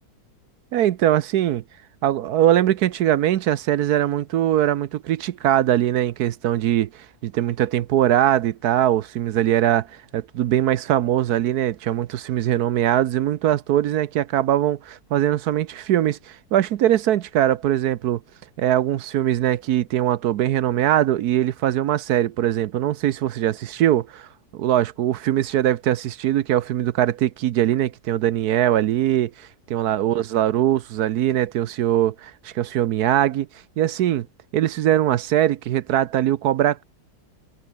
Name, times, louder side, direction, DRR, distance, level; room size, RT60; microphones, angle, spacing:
voice 1, 0.7-1.6 2.0-18.2 18.6-33.5 33.8-34.3 34.5-36.8, right 12 dB, 65° right, 1.1 m, -21 dB
omnidirectional pair, 1.9 m